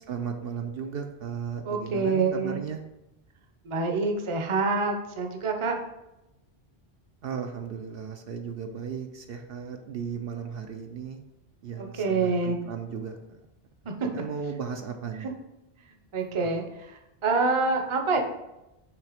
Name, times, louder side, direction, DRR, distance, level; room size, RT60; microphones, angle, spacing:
voice 1, 0.1-2.8 7.2-11.2 11.6-13.4 14.1-15.3, right 6 dB, 65° right, 5 dB, 0.8 m, -35 dB
voice 2, 1.6-2.6 3.6-5.8 11.8-12.6 13.9-14.0 15.2-15.3 16.1-18.2, right 4 dB, 35° right, 3 dB, 0.6 m, -26 dB
6.1 x 3.3 x 5.0 m, 0.93 s
omnidirectional pair, 1.1 m